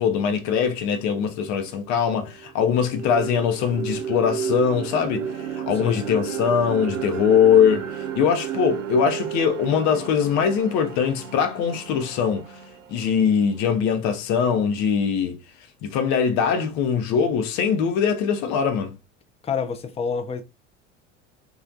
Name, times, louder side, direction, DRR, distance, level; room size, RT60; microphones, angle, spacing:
voice 1, 0.0-7.9 8.2-12.4 12.9-15.4 15.8-19.0, left 7 dB, 50° left, 0.8 m, -22 dB
sound 1, 1.6-1.7 2.2-14.2, right 8 dB, 85° right, 0.6 m, -33 dB
voice 2, 5.7-6.0 19.4-20.4, left 6 dB, 15° left, 0.5 m, -28 dB
3.1 x 2.4 x 2.5 m
hypercardioid pair, 75°, 37 cm